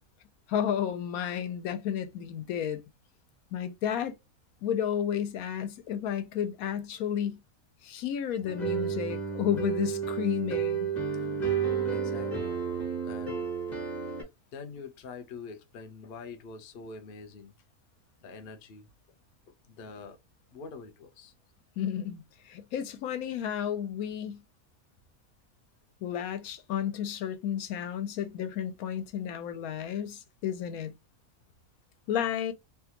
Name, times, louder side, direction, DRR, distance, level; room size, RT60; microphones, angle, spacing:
voice 1, 0.5-2.8 3.5-4.1 4.6-7.4 7.8-10.9 21.8-24.4 26.0-30.9 32.1-32.5, left 9 dB, 80° left, 1.1 m, -32 dB
sound 1, 8.4-14.2, right 6 dB, 30° left, 1.3 m, -31 dB
voice 2, 11.9-12.5 13.0-13.5 14.0-14.1 14.5-17.5 18.2-18.9 19.6-20.2 20.5-21.3, left 4 dB, 55° left, 0.7 m, -45 dB
3.3 x 2.3 x 2.8 m
omnidirectional pair, 1.5 m